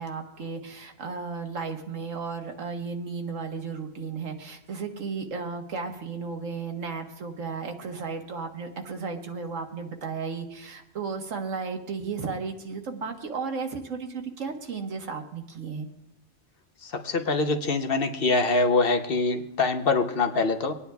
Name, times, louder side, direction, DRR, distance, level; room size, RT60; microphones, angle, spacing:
voice 1, 0.0-15.9, right 5 dB, 90° right, 4 dB, 1.6 m, -34 dB
voice 2, 16.8-20.7, left 3 dB, 55° left, 6 dB, 1.0 m, -24 dB
25.0 x 9.6 x 2.3 m, 0.89 s
omnidirectional pair, 1.3 m